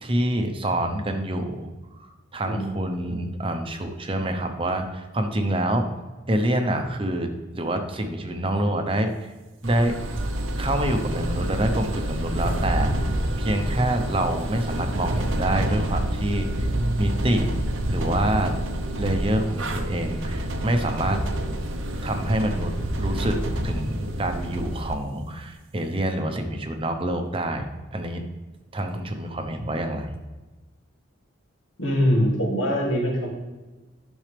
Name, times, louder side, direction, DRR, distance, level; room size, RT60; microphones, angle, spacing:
voice 1, 0.0-1.7 2.3-5.9 6.3-9.3 9.6-10.0 10.6-12.9 13.4-16.7 17.0-17.5 17.9-18.6 19.0-21.2 22.0-22.7 23.0-27.6 27.9-28.2 28.7-30.1, right 1 dB, 25° right, 5 dB, 0.8 m, -26 dB
sound 1, 9.6-24.9, right 1 dB, 80° right, 0.9 m, -28 dB
voice 2, 31.8-33.3, equal, 85° left, -3 dB, 2.7 m, -23 dB
10.5 x 6.3 x 3.4 m, 1.2 s
head